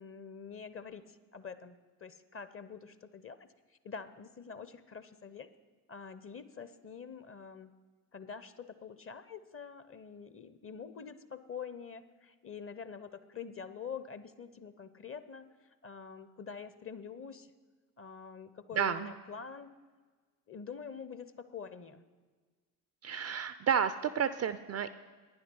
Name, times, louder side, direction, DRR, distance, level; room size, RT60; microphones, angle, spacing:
voice 1, 0.0-3.5 3.8-5.5 5.9-7.7 8.1-15.5 15.8-17.5 18.0-19.7 20.5-22.0, left 6 dB, 25° left, 13 dB, 0.7 m, -46 dB
voice 2, 18.8-19.1 23.0-24.9, right 7 dB, 35° right, 13 dB, 0.4 m, -31 dB
11.5 x 9.7 x 5.4 m, 1.4 s
figure-of-eight pair, 45°, 49 cm